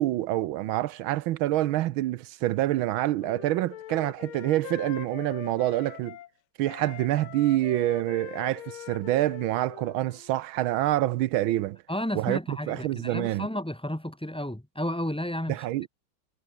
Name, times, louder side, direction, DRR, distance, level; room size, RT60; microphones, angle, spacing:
voice 1, 0.0-6.2 6.6-11.8 12.1-13.5 15.5-15.9, right 15 dB, 80° right, 1.4 m, -27 dB
Wind instrument woodwind instrument, 2.7-6.3 6.6-10.4, left 13 dB, 80° left, 1.7 m, -43 dB
voice 2, 11.9-15.7, left 1 dB, 5° left, 0.7 m, -32 dB
omnidirectional pair, 2.3 m